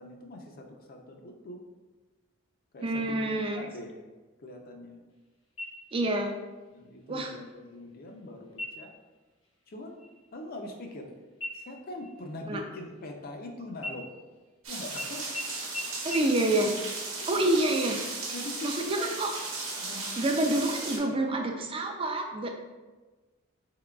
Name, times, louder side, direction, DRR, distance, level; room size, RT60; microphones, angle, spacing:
voice 1, 0.0-1.6 2.7-4.1 4.4-5.0 6.7-8.9 9.7-10.0 10.3-11.1 11.5-14.1 14.7-15.5 17.1-17.6 18.3-19.1 19.8-20.3 20.9-21.5, left 1 dB, 45° left, 3 dB, 0.5 m, -42 dB
voice 2, 2.8-3.7 5.9-6.3 7.1-7.3 12.5-12.6 16.0-16.7 17.3-18.0 18.6-19.3 20.2-22.5, right 1 dB, 25° right, 3 dB, 0.4 m, -27 dB
sound 1, 5.6-6.2 6.6-6.7 7.3-7.8 8.5-9.0 9.4-9.7 10.0-11.1 11.4-13.4 13.8-14.6 15.0-15.1 15.3-15.4 15.7-15.8 16.1-16.2, left 1 dB, 80° left, 1.0 m, -40 dB
sound 2, 14.6-21.0, right 3 dB, 80° right, 1.0 m, -36 dB
3.8 x 3.7 x 2.2 m, 1.3 s
head